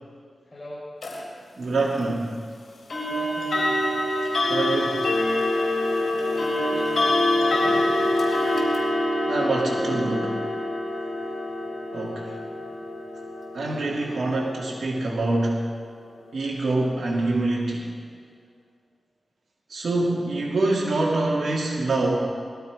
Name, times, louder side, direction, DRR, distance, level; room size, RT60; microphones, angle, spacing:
voice 1, 0.4-0.9 3.0-3.7 6.1-8.1, left 1 dB, 30° left, -7 dB, 5.0 m, -41 dB
sound 1, 1.0-1.2 2.9-15.7, left 1 dB, 65° left, 3.4 m, -26 dB
voice 2, 1.6-2.3 4.2-5.1 7.5-7.8 9.3-10.4 11.9-12.4 13.5-15.6 16.3-17.9 19.7-22.2, right 2 dB, 70° right, -4 dB, 2.5 m, -25 dB
20.0 x 13.0 x 5.0 m, 2.1 s
cardioid pair, 65°, 0 cm